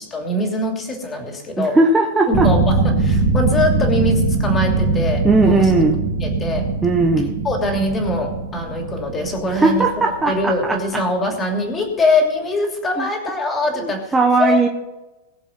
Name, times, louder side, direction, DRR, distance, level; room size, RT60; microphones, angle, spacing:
voice 1, 0.0-1.8 2.3-5.7 6.2-6.6 7.4-9.8 10.2-14.1 14.4-14.7, left 2 dB, 15° left, 2 dB, 2.8 m, -22 dB
voice 2, 1.6-2.5 5.2-5.9 6.8-7.4 9.6-10.6 13.0-13.1 13.8-14.7, right 3 dB, 5° right, 0 dB, 0.9 m, -17 dB
sound 1, 2.3-10.7, right 3 dB, 30° right, 2.0 m, -21 dB
21.5 x 7.2 x 4.4 m, 1.1 s
supercardioid pair, 165°, 0 cm